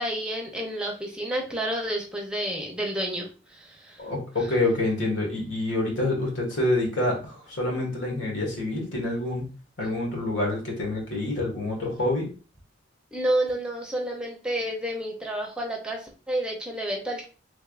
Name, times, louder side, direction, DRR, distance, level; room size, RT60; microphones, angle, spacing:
voice 1, 0.0-4.0 4.4-4.5 9.8-9.9 13.1-17.3, right 1 dB, 5° right, 0 dB, 0.6 m, -30 dB
voice 2, 4.0-9.5 9.8-12.3, left 2 dB, 90° left, -1 dB, 1.5 m, -27 dB
3.4 x 3.2 x 2.4 m, 0.35 s
head